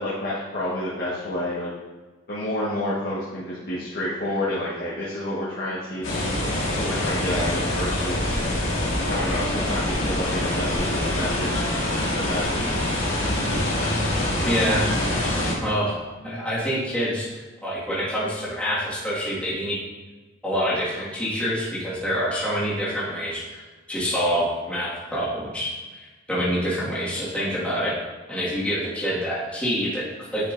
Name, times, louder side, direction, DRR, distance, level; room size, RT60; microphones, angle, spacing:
voice 1, 0.0-1.7 2.3-6.4 6.7-8.3 9.1-11.6 12.1-12.8, left 1 dB, 50° left, -8 dB, 1.3 m, -29 dB
sound 1, 6.0-15.5, left 1 dB, 85° left, 1.6 m, -25 dB
voice 2, 14.3-14.9 15.6-16.0 16.2-17.3 17.6-19.8 20.4-23.6 23.9-28.0 28.3-30.5, equal, 5° left, -9 dB, 1.8 m, -26 dB
9.7 x 5.5 x 2.6 m, 1.3 s
head